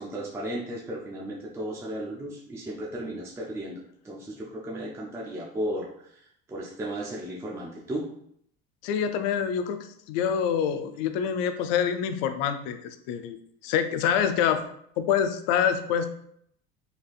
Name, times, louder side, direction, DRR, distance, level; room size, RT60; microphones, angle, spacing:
voice 1, 0.0-6.2 6.5-8.0, right 1 dB, 10° right, -3 dB, 0.4 m, -35 dB
voice 2, 8.8-13.4 13.6-14.6 15.0-16.1, left 8 dB, 80° left, 10 dB, 0.4 m, -26 dB
3.3 x 2.7 x 2.3 m, 0.69 s
supercardioid pair, 105°, 30 cm